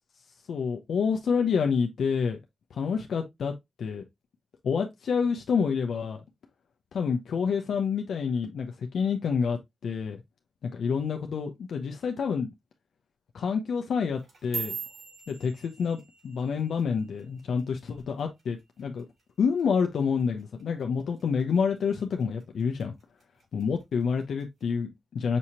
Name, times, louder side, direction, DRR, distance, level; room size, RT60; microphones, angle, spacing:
voice 1, 0.5-2.4 2.7-3.5 3.8-4.0 4.6-6.2 6.9-10.2 10.6-12.5 13.3-14.8 15.3-19.1 19.4-22.9 23.5-25.4, left 6 dB, 75° left, 0.6 m, -28 dB
sound 1, 14.1-18.5 18.8-19.2 19.6-20.0 20.4-20.6 21.2-21.6 22.0-22.8 23.2-23.6 24.4-24.5, right 6 dB, 55° right, 3.3 m, -41 dB
6.2 x 2.8 x 2.7 m
cardioid pair, 85°, 0 cm